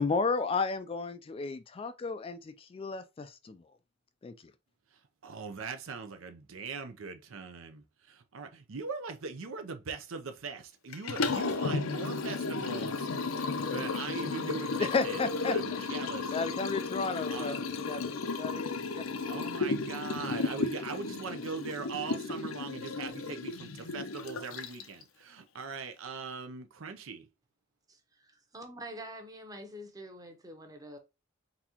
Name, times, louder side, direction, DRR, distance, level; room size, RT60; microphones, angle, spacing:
voice 1, 0.0-3.6 4.2-4.3 14.8-15.8 16.3-19.0, left 4 dB, 25° left, 0.3 m, -33 dB
voice 2, 5.2-13.1 13.6-16.3 17.3-17.6 19.2-27.3, right 5 dB, 75° right, 0.6 m, -41 dB
Liquid, 10.9-25.0, left 4 dB, 90° left, 0.6 m, -34 dB
voice 3, 27.9-31.0, right 1 dB, 20° right, 0.8 m, -46 dB
4.0 x 3.6 x 2.8 m
head